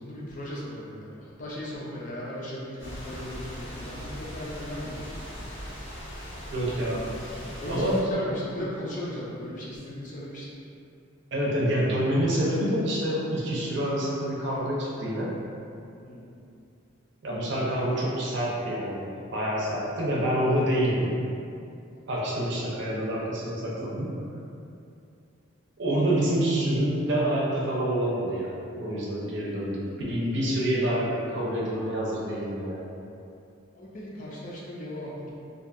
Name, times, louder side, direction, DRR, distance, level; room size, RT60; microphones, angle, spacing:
voice 1, 0.0-5.3 7.6-10.6 16.0-16.3 21.9-22.0 33.7-35.3, left 1 dB, 40° left, -6 dB, 0.4 m, -37 dB
sound 1, 2.8-8.0, equal, 65° left, 0.8 m, -40 dB
voice 2, 6.5-7.1 7.4-8.0 11.3-15.3 17.2-21.1 22.1-24.1 25.8-32.9, right 1 dB, 60° right, -5 dB, 0.5 m, -27 dB
2.5 x 2.2 x 2.5 m, 2.5 s
head